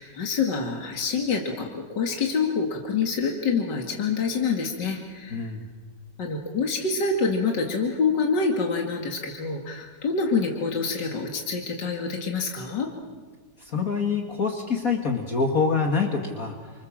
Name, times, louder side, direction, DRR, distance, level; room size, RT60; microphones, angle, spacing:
voice 1, 0.0-5.5 6.2-12.9, left 4 dB, 70° left, 1 dB, 2.8 m, -26 dB
voice 2, 5.3-5.6 13.6-16.7, left 5 dB, 50° left, 3 dB, 2.4 m, -25 dB
29.5 x 26.0 x 7.5 m, 1.5 s
omnidirectional pair, 2.0 m